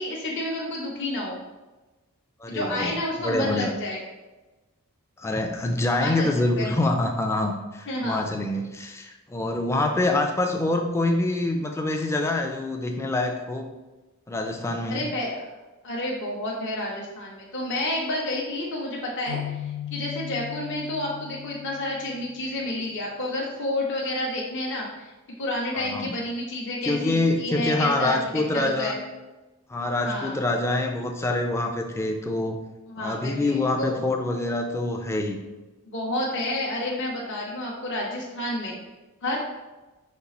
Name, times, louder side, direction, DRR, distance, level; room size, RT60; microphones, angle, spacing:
voice 1, 0.0-1.4 2.5-4.0 6.0-6.3 6.6-6.7 7.9-8.3 14.9-15.4 15.8-25.1 25.4-28.2 28.5-29.0 30.0-30.4 32.9-34.0 35.9-38.8 39.2-39.4, left 1 dB, 55° left, -3 dB, 0.7 m, -30 dB
voice 2, 2.4-2.9 3.2-3.7 5.2-13.7 14.3-15.1 25.7-26.1 26.8-29.0 29.7-32.6 33.0-35.4, left 2 dB, 10° left, 3 dB, 0.3 m, -26 dB
sound 1, 19.3-22.8, left 11 dB, 80° left, 1.2 m, -37 dB
5.3 x 2.4 x 4.0 m, 1.1 s
head